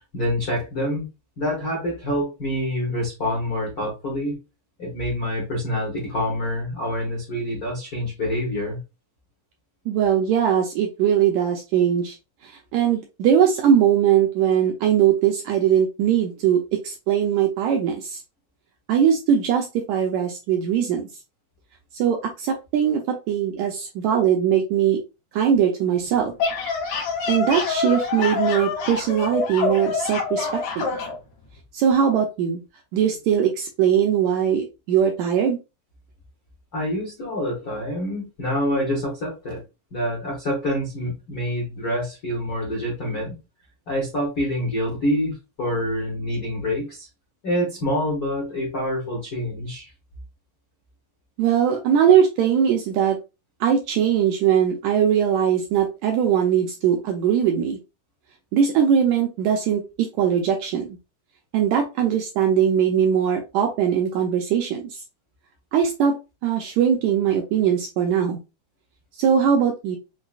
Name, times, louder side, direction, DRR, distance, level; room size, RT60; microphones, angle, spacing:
voice 1, 0.1-1.0 1.4-4.4 4.8-8.8 36.7-39.6 39.9-43.4 43.9-47.1 47.4-49.9, left 1 dB, 85° left, -4 dB, 0.8 m, -26 dB
voice 2, 9.9-12.2 12.4-18.2 18.9-21.1 21.9-25.0 25.3-26.3 27.3-31.0 31.7-32.6 32.9-35.6 51.4-53.2 53.6-57.8 58.5-60.9 61.5-65.0 65.7-66.2 66.4-68.4 69.2-70.0, right 8 dB, 80° right, 2 dB, 1.7 m, -20 dB
sound 1, 26.2-31.2, left 5 dB, 65° left, 2.1 m, -26 dB
5.6 x 2.2 x 2.4 m, 0.27 s
omnidirectional pair, 3.7 m